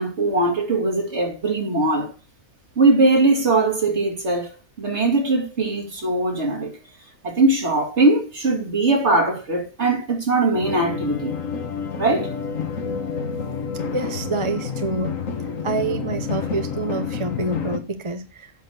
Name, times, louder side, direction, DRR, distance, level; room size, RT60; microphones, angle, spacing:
voice 1, 0.0-2.1 2.8-6.7 7.2-11.3 12.0-12.3, right 2 dB, 50° right, 2.6 m, -20 dB
sound 1, 10.5-17.8, left 5 dB, 65° left, 1.6 m, -29 dB
voice 2, 13.9-15.1 15.6-18.5, right 3 dB, 25° right, 0.7 m, -27 dB
8.3 x 6.4 x 7.9 m
omnidirectional pair, 1.5 m